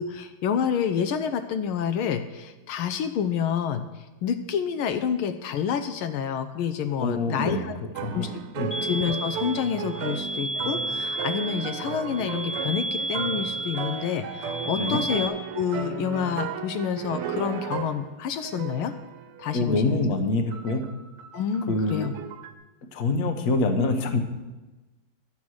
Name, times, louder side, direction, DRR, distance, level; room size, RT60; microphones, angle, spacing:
voice 1, 0.0-3.8 4.2-7.7 8.1-8.3 8.8-18.9 19.4-20.0 21.3-22.1, left 8 dB, 75° left, 8 dB, 1.5 m, -28 dB
voice 2, 7.0-7.6 8.0-8.3 8.6-8.7 14.8-15.0 19.5-20.8 21.7-22.1 22.9-24.2, left 2 dB, 50° left, 7 dB, 1.1 m, -25 dB
sound 1, 8.0-18.1 18.4-19.9 20.5-22.5, right 8 dB, 90° right, 1.7 m, -35 dB
sound 2, 8.7-15.3, right 1 dB, 25° left, 1.1 m, -32 dB
12.0 x 7.3 x 6.3 m, 1.1 s
omnidirectional pair, 2.4 m